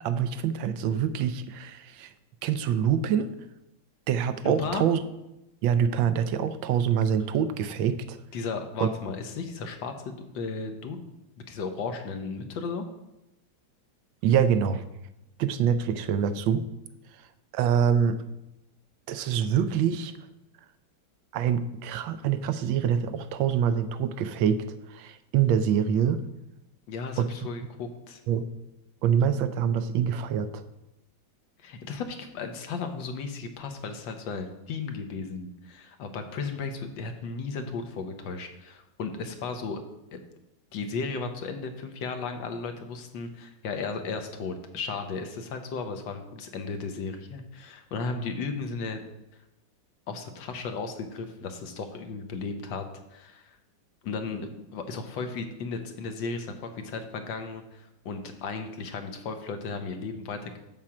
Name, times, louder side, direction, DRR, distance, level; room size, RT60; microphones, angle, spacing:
voice 1, 0.0-2.1 2.4-3.3 4.1-5.0 5.6-8.2 8.8-8.9 14.2-14.8 15.4-16.7 17.5-18.2 19.1-20.1 21.3-26.2 27.2-27.3 28.3-28.5 29.0-30.6, right 8 dB, 80° right, 11 dB, 1.4 m, -25 dB
voice 2, 4.4-4.9 8.3-11.0 11.4-12.8 26.9-28.2 31.6-39.8 40.1-40.2 40.7-49.0 50.1-52.8 53.1-53.6 54.0-60.6, left 4 dB, 70° left, 6 dB, 1.6 m, -35 dB
7.5 x 7.1 x 4.9 m, 0.92 s
omnidirectional pair, 2.1 m